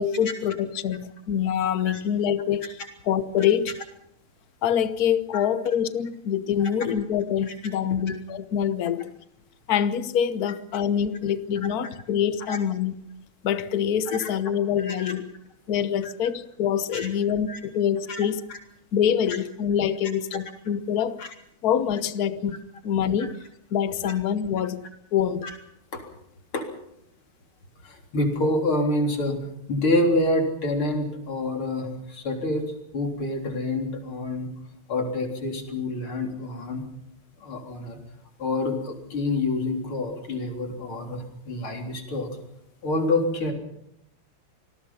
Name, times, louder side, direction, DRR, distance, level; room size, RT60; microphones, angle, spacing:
voice 1, 0.0-2.7 3.1-3.7 4.6-9.1 9.7-12.9 13.4-15.3 15.7-18.4 18.9-21.3 21.6-23.4 23.7-24.8 25.1-25.5, left 8 dB, 50° left, 13 dB, 1.4 m, -25 dB
voice 2, 1.6-2.0 5.3-5.5 6.6-6.7 7.5-7.6 8.1-8.2 12.5-12.6 14.1-14.3 14.8-15.1 16.0-16.1 16.9-17.1 17.5-17.6 18.1-18.6 21.2-21.3 23.2-23.3 24.0-24.2 25.4-25.6 25.9-26.0 26.5-26.7 27.8-29.4 29.7-34.5 34.9-36.8 37.4-38.0 38.4-42.3 42.8-43.5, left 2 dB, 75° left, 3 dB, 4.6 m, -27 dB
27.5 x 20.0 x 5.7 m, 0.78 s
omnidirectional pair, 2.3 m